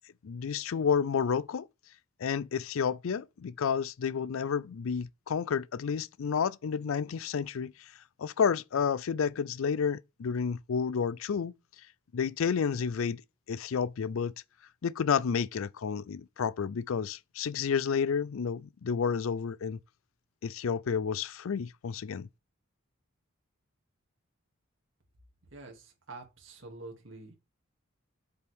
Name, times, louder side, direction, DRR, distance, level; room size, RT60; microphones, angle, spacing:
voice 1, 0.2-1.7 2.2-7.9 8.2-11.5 12.1-13.2 13.5-14.3 14.8-19.8 20.4-22.3, left 6 dB, 75° left, 0.4 m, -30 dB
voice 2, 25.5-27.4, right 2 dB, 60° right, 2.5 m, -47 dB
7.8 x 7.1 x 3.5 m
head